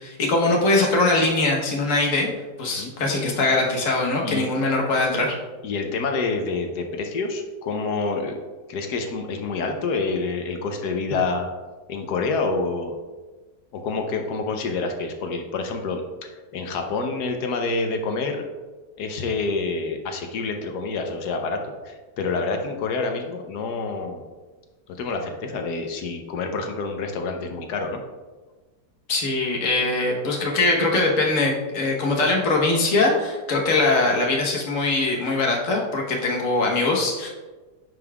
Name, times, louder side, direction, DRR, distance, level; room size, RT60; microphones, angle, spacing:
voice 1, 0.0-2.3 2.6-5.3 29.1-37.3, left 2 dB, 55° left, -1 dB, 1.4 m, -22 dB
voice 2, 5.6-8.3 8.7-11.5 11.9-13.0 13.7-16.0 16.5-18.5 19.0-24.2 25.0-28.0, left 3 dB, 70° left, 4 dB, 1.2 m, -27 dB
9.5 x 5.3 x 2.3 m, 1.3 s
omnidirectional pair, 1.9 m